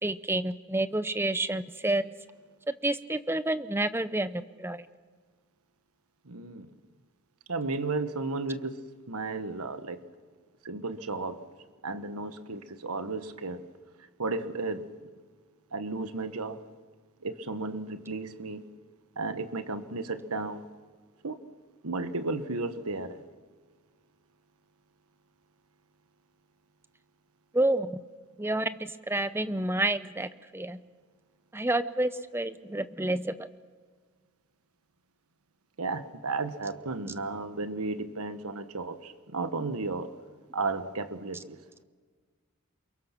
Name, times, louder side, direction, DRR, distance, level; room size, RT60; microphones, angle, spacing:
voice 1, 0.0-2.1 2.8-4.9 27.5-28.0 28.4-30.8 31.5-33.3, right 1 dB, 10° right, 13 dB, 0.7 m, -29 dB
voice 2, 6.3-6.7 7.5-8.8 9.1-10.0 10.6-11.4 11.8-13.6 14.2-14.8 15.7-16.6 17.2-18.6 19.2-20.7 21.2-21.4 21.8-23.2 27.7-27.9 31.8-31.9 35.8-40.1 40.5-41.6, right 3 dB, 85° right, 10 dB, 1.4 m, -33 dB
28.5 x 23.0 x 6.0 m, 1.5 s
head